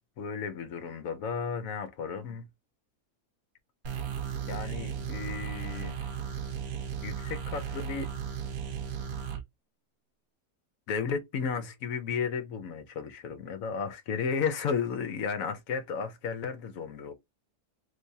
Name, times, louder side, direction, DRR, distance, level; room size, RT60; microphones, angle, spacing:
voice 1, 0.2-2.5 4.5-6.1 7.0-8.1 10.9-17.1, left 6 dB, 65° left, 1.1 m, -33 dB
sound 1, 3.8-9.4, right 8 dB, 70° right, 1.2 m, -35 dB
3.4 x 3.1 x 2.7 m
omnidirectional pair, 1.7 m